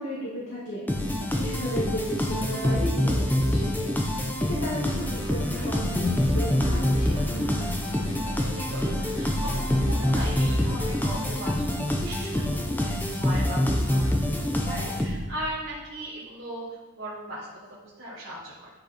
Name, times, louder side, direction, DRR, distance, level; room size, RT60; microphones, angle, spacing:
voice 1, 0.0-3.9 4.4-7.8, equal, 80° left, -7 dB, 2.0 m, -34 dB
sound 1, 0.9-15.4, left 1 dB, 10° left, 0.7 m, -26 dB
sound 2, 4.8-11.3, equal, 60° left, 1.4 m, -37 dB
voice 2, 8.1-16.7 16.9-18.7, equal, 60° right, -7 dB, 1.7 m, -38 dB
10.5 x 5.5 x 4.3 m, 1.3 s
head